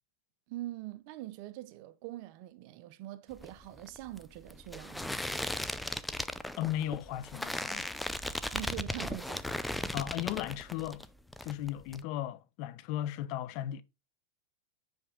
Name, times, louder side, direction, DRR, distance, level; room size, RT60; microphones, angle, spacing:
voice 1, 0.5-5.2 8.5-9.4, right 15 dB, 55° right, 0.6 m, -43 dB
sound 1, 3.3-11.1 11.3-12.0, left 1 dB, 5° left, 0.4 m, -37 dB
voice 2, 6.6-7.9 9.9-11.0 11.4-13.8, left 12 dB, 50° left, 0.7 m, -36 dB
6.0 x 5.2 x 3.5 m
supercardioid pair, 130°, 0 cm